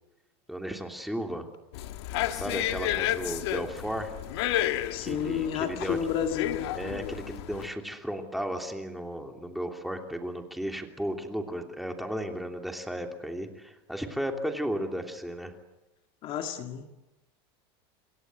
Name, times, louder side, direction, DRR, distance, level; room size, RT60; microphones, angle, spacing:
voice 1, 0.5-1.5 2.3-4.1 5.0-6.0 6.7-15.5, equal, ahead, 4 dB, 3.0 m, -34 dB
sound 1, 1.7-7.7, left 13 dB, 80° left, 1.9 m, -32 dB
voice 2, 4.9-6.7 16.2-17.0, left 9 dB, 40° left, 6 dB, 1.9 m, -31 dB
28.0 x 23.5 x 7.8 m, 0.98 s
supercardioid pair, 155°, 14 cm